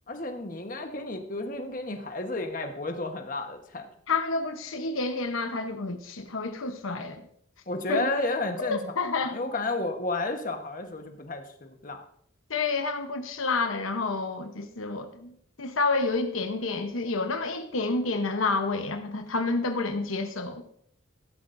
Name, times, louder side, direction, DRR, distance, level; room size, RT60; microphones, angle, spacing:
voice 1, 0.1-3.9 7.7-8.9 9.2-12.0, left 2 dB, 40° left, 5 dB, 1.2 m, -32 dB
voice 2, 4.1-7.2 7.9-8.1 8.6-9.4 12.5-20.6, left 3 dB, 85° left, 6 dB, 1.0 m, -29 dB
14.5 x 12.0 x 2.6 m, 0.66 s
head